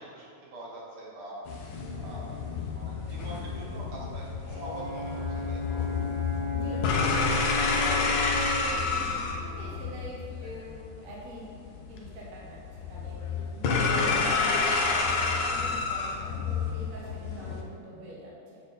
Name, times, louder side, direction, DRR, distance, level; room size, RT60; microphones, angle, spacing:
voice 1, 0.0-1.4 2.0-2.4 2.7-5.9 17.0-17.1, right 2 dB, 85° right, -4 dB, 2.2 m, -44 dB
sound 1, 1.5-17.6, left 4 dB, 75° left, 1.4 m, -30 dB
Brass instrument, 4.5-8.7, left 3 dB, 55° left, 2.2 m, -34 dB
voice 2, 6.5-11.6 11.9-13.2 13.5-18.6, right 1 dB, 45° right, -5 dB, 1.3 m, -43 dB
7.7 x 4.3 x 4.0 m, 2.4 s
omnidirectional pair, 2.4 m